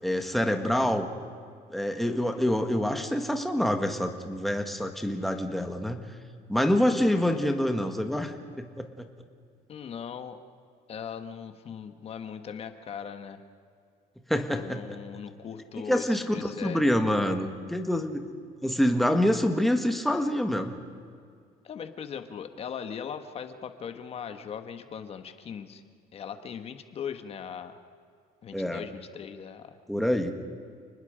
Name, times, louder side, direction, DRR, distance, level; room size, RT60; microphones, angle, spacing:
voice 1, 0.0-1.1 1.7-6.0 6.5-9.1 14.3-14.8 15.7-18.2 18.6-20.7 28.5-28.8 29.9-30.3, left 1 dB, ahead, 5 dB, 1.6 m, -26 dB
voice 2, 9.7-10.4 10.9-13.4 14.5-16.8 21.6-25.8 26.1-27.8 28.4-29.8, left 7 dB, 35° left, 8 dB, 1.4 m, -39 dB
30.0 x 20.5 x 5.1 m, 2.2 s
cardioid pair, 150°, 16 cm